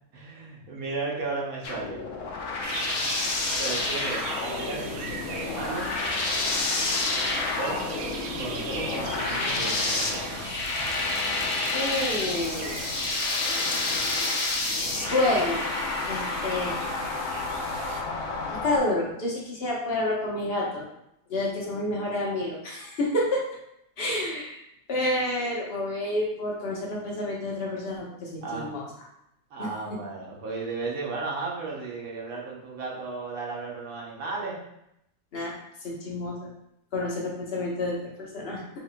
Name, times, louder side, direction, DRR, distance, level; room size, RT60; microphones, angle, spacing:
voice 1, 0.1-2.0 3.6-6.0 7.6-7.8 8.4-10.5 28.4-28.7 29.5-34.6, right 3 dB, 80° right, -3 dB, 1.4 m, -35 dB
sound 1, 1.6-18.8, left 3 dB, 65° left, 1.0 m, -29 dB
sound 2, 2.6-18.0, right 3 dB, 65° right, 0.7 m, -38 dB
voice 2, 11.7-12.7 15.1-15.6 16.1-16.7 18.5-20.8 21.3-23.4 24.0-24.6 24.9-28.8 29.6-29.7 35.3-35.5 35.8-36.5 36.9-38.6, left 1 dB, 45° left, -4 dB, 1.2 m, -29 dB
5.6 x 3.3 x 2.2 m, 0.79 s
omnidirectional pair, 1.5 m